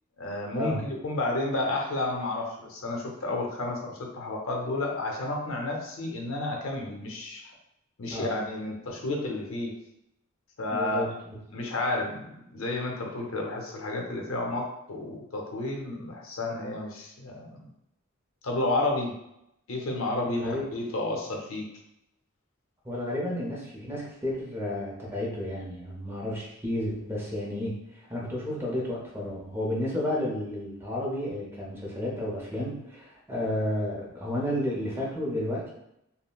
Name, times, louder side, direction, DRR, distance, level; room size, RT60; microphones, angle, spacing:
voice 1, 0.2-7.5 8.0-9.7 10.6-11.0 11.5-17.7 18.4-19.2 19.7-21.7, left 2 dB, 70° left, 1 dB, 0.6 m, -31 dB
voice 2, 10.7-11.4 14.3-14.4 20.2-20.7 22.8-27.8 28.1-35.7, left 1 dB, 10° right, -4 dB, 0.7 m, -32 dB
3.7 x 2.0 x 2.3 m, 0.80 s
head